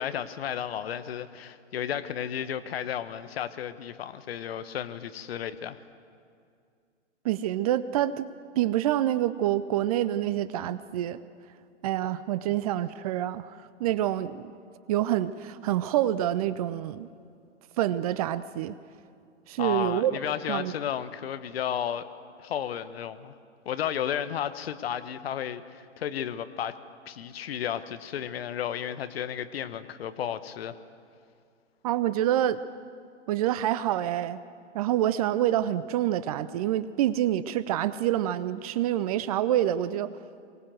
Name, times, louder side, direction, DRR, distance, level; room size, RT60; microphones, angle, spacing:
voice 1, 0.0-5.8 19.6-22.1 22.4-23.3 23.6-26.8 27.1-30.8, left 9 dB, 55° left, 12 dB, 1.2 m, -33 dB
voice 2, 7.2-8.3 8.6-11.2 11.8-14.4 14.9-17.1 17.8-18.7 19.5-20.1 20.5-20.7 31.8-32.6 33.3-34.4 34.7-40.1, right 12 dB, 30° right, 16 dB, 0.6 m, -27 dB
23.5 x 18.5 x 7.8 m, 2.3 s
figure-of-eight pair, 115°, 36 cm